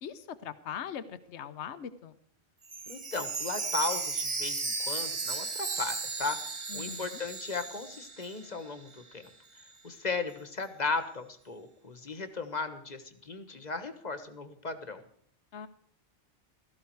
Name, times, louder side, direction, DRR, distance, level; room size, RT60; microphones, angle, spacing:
voice 1, 0.0-2.1 6.7-7.2 15.5-15.7, left 8 dB, 75° left, 13 dB, 1.1 m, -41 dB
Chime, 2.6-8.6 8.9-9.0 9.6-9.7, right 4 dB, 30° right, 0.8 m, -35 dB
voice 2, 2.9-9.3 9.8-15.0, left 4 dB, 40° left, 10 dB, 1.4 m, -36 dB
16.5 x 14.5 x 4.6 m, 0.64 s
omnidirectional pair, 1.2 m